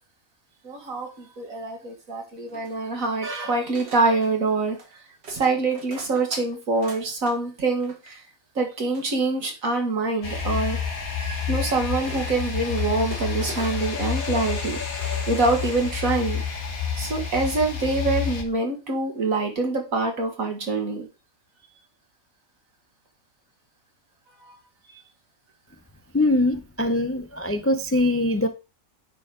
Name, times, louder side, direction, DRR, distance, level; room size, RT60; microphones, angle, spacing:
voice 1, 0.6-4.8 5.3-8.2 8.6-10.8 11.2-14.8 15.3-16.4 17.0-21.1 24.4-24.6, right 3 dB, 75° right, 2.3 m, -25 dB
sound 1, 2.5-3.2 3.8-4.3 4.7-4.9 5.2-7.4 7.7-8.1 8.9-9.7 11.1-11.2 12.0-14.0 14.3-14.7 15.0-16.0 16.4-16.5, right 3 dB, 50° right, 1.6 m, -44 dB
sound 2, 10.2-18.4, left 6 dB, 80° left, 2.0 m, -29 dB
voice 2, 26.1-28.5, left 1 dB, 20° left, 0.3 m, -22 dB
9.7 x 4.4 x 4.9 m
omnidirectional pair, 1.5 m